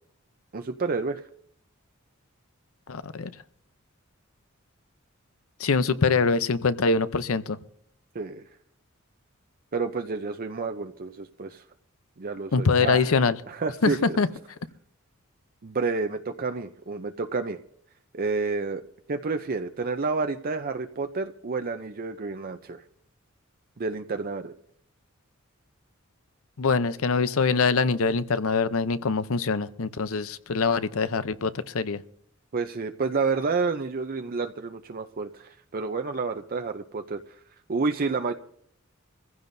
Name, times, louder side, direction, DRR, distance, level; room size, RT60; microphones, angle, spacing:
voice 1, 0.5-1.2 8.1-8.4 9.7-11.6 12.2-13.1 13.5-14.2 15.6-17.6 18.1-18.8 19.1-22.8 23.8-24.5 32.5-37.3 37.7-38.3, right 4 dB, 45° right, 6 dB, 0.6 m, -29 dB
voice 2, 2.9-3.3 5.6-7.6 12.5-13.4 13.8-14.3 26.6-32.0, left 4 dB, 70° left, 14 dB, 0.7 m, -24 dB
24.5 x 15.5 x 2.7 m, 0.69 s
head